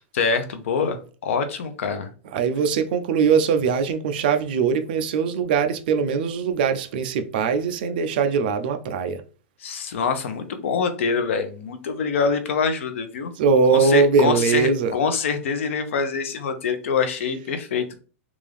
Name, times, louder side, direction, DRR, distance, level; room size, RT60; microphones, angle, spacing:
voice 1, 0.1-2.1 9.6-13.3 13.7-18.0, left 5 dB, 60° left, 0.7 m, -25 dB
voice 2, 2.3-9.2 13.4-14.9, right 5 dB, 40° right, 0.4 m, -21 dB
3.5 x 2.6 x 3.3 m
supercardioid pair, 175°, 8 cm